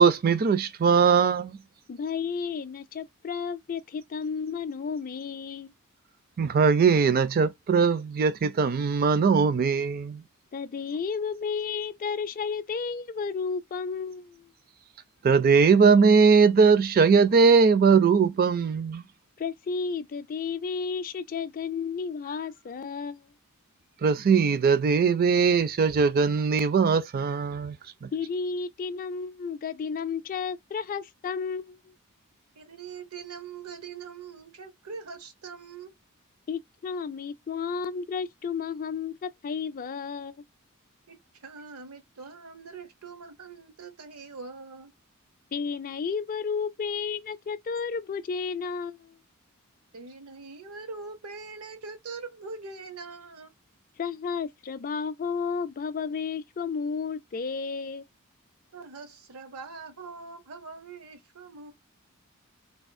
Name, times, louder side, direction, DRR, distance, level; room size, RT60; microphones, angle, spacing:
voice 1, 0.0-1.6 6.4-10.2 15.2-19.0 24.0-27.8 28.0-28.1, right 5 dB, 45° right, 0.4 m, -20 dB
voice 2, 1.9-5.7 10.5-14.5 19.4-23.3 28.1-31.9 36.5-40.4 45.5-49.2 54.0-58.0, left 5 dB, 40° left, 0.4 m, -32 dB
voice 3, 32.6-35.9 41.1-41.2 41.4-44.9 49.9-53.5 58.7-61.7, right 4 dB, 85° right, 0.8 m, -42 dB
3.4 x 2.4 x 2.5 m
head